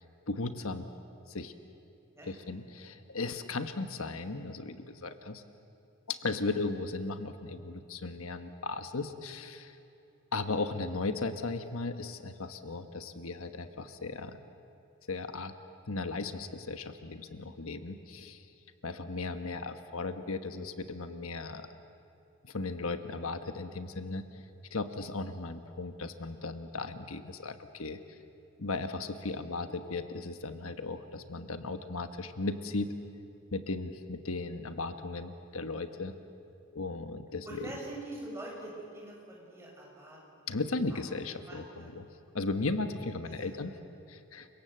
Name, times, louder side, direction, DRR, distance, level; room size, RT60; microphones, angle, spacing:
voice 1, 0.3-0.9 1.3-1.5 2.2-5.4 6.1-9.8 10.3-14.4 15.1-15.5 15.9-18.5 18.8-21.7 22.4-24.4 24.7-28.2 28.6-32.9 33.5-36.1 36.7-37.7 40.5-42.0 42.3-43.7 44.1-44.5, left 3 dB, 75° left, 8 dB, 1.3 m, -36 dB
voice 2, 37.5-41.0 41.4-41.9 43.2-43.5, right 1 dB, 10° right, -3 dB, 7.0 m, -45 dB
29.5 x 25.0 x 7.9 m, 2.7 s
head